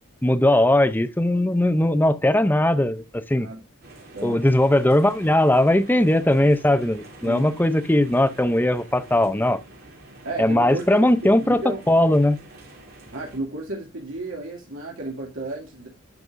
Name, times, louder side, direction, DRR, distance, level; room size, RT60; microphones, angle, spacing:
voice 1, 0.2-3.5 4.2-9.6 10.4-12.4, left 1 dB, 10° left, 0.5 m, -19 dB
sound 1, 3.8-13.4, right 2 dB, 50° right, 3.0 m, -46 dB
voice 2, 4.1-4.4 7.2-7.5 10.2-11.8 13.1-15.9, right 1 dB, 70° right, 2.4 m, -33 dB
11.0 x 5.3 x 2.6 m
head